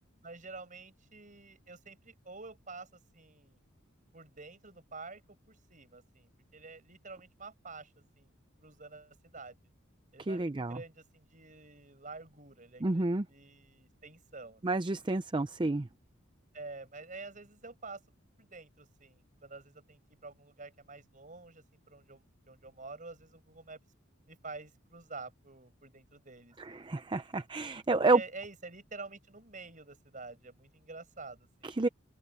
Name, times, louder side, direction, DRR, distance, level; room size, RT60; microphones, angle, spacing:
voice 1, 0.2-3.6 4.1-5.2 5.5-8.3 8.6-9.6 10.1-14.6 16.5-18.0 18.4-23.8 24.3-26.9 28.1-31.9, right 3 dB, 40° right, 6.4 m, -48 dB
voice 2, 10.3-10.8 12.8-13.2 14.6-15.9 26.6-28.2 31.6-31.9, right 2 dB, 25° right, 0.5 m, -29 dB
open air
head